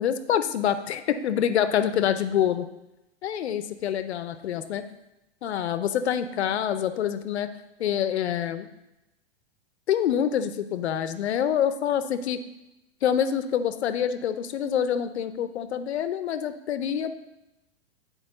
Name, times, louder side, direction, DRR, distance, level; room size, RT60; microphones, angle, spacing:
voice 1, 0.0-2.7 3.2-4.8 5.4-7.5 7.8-8.7 9.9-12.4 13.0-17.1, left 9 dB, 80° left, 11 dB, 0.7 m, -26 dB
8.8 x 4.5 x 3.8 m, 0.94 s
hypercardioid pair, 115°, 32 cm